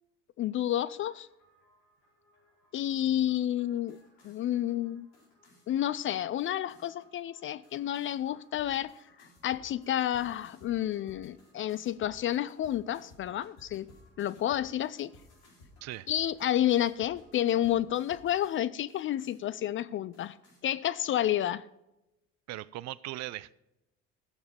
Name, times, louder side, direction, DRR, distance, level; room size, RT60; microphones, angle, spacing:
voice 1, 0.4-1.3 2.7-4.0 4.2-5.1 5.7-8.9 9.4-13.9 14.2-15.1 16.1-20.4 20.6-21.6, left 12 dB, 35° left, 0.4 m, -30 dB
sound 1, 0.8-18.6 18.9-19.7 20.1-20.6, left 1 dB, 65° left, 4.6 m, -60 dB
voice 2, 22.5-23.5, right 16 dB, 45° right, 0.6 m, -39 dB
14.5 x 7.1 x 5.5 m
figure-of-eight pair, 60°, 37 cm